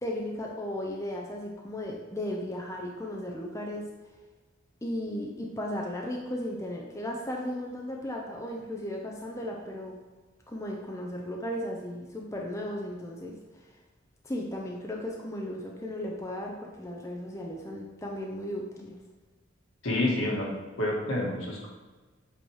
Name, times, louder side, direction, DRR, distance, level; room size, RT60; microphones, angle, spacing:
voice 1, 0.0-3.8 4.8-9.9 10.5-13.6 14.2-19.0, left 1 dB, 15° left, -1 dB, 0.6 m, -35 dB
voice 2, 19.8-20.5 20.8-21.7, left 1 dB, 85° left, -3 dB, 1.7 m, -28 dB
7.8 x 3.0 x 4.8 m, 1.2 s
head